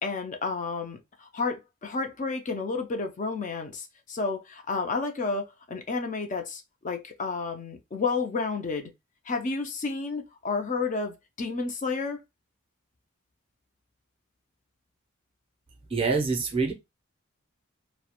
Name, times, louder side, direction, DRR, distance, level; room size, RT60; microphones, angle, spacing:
voice 1, 0.0-8.9 9.3-12.2, left 4 dB, 35° left, 0.3 m, -31 dB
voice 2, 15.9-16.7, right 4 dB, 25° right, 0.5 m, -25 dB
2.3 x 2.0 x 2.8 m
head